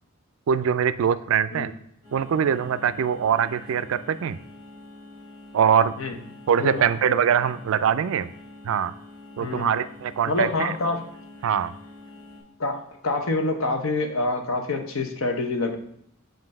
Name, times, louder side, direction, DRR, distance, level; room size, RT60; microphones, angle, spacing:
voice 1, 0.5-1.7 2.1-4.4 5.5-5.9 6.5-8.3 8.6-8.9 9.4-10.7 11.4-11.7, right 8 dB, 65° right, 14 dB, 0.3 m, -23 dB
sound 1, 2.0-12.4, left 2 dB, 20° left, 1.9 m, -46 dB
voice 2, 6.6-6.9 9.4-9.7 10.3-11.0 12.6-15.8, left 2 dB, 70° left, 5 dB, 0.8 m, -26 dB
7.6 x 2.6 x 5.2 m, 0.70 s
head